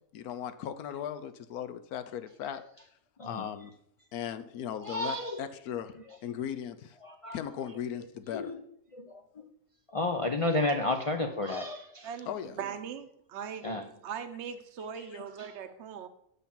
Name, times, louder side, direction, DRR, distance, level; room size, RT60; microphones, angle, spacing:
voice 1, 0.1-2.6 3.2-3.7 4.1-7.0 7.3-8.5 12.3-12.6 15.0-15.2, left 9 dB, 85° left, 11 dB, 1.2 m, -38 dB
voice 2, 4.8-5.4 7.0-7.4 8.3-8.6 8.9-9.4 9.9-12.1 13.6-13.8 15.4-15.5, left 2 dB, 55° left, 4 dB, 0.3 m, -31 dB
voice 3, 12.0-16.1, right 7 dB, 55° right, 7 dB, 1.0 m, -40 dB
6.9 x 5.9 x 7.2 m, 0.71 s
omnidirectional pair, 1.5 m